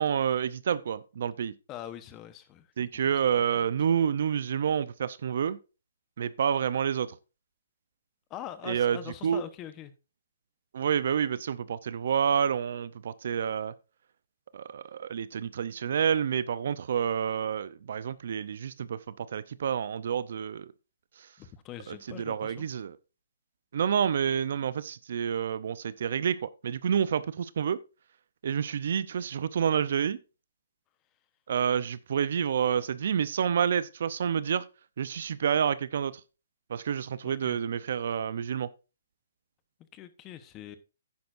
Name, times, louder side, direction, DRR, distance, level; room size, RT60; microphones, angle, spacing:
voice 1, 0.0-1.5 2.8-5.6 6.2-7.1 8.7-9.0 9.2-9.4 10.7-13.7 14.5-20.7 21.9-23.0 23.7-27.8 28.4-30.2 31.5-34.6 35.0-36.2 36.7-38.7, right 8 dB, 60° right, 0.6 m, -28 dB
voice 2, 1.7-2.9 3.3-3.6 8.3-9.9 21.4-22.7 37.2-37.6 39.9-40.8, left 11 dB, 25° left, 1.0 m, -43 dB
10.5 x 9.6 x 2.6 m
hypercardioid pair, 150°, 0 cm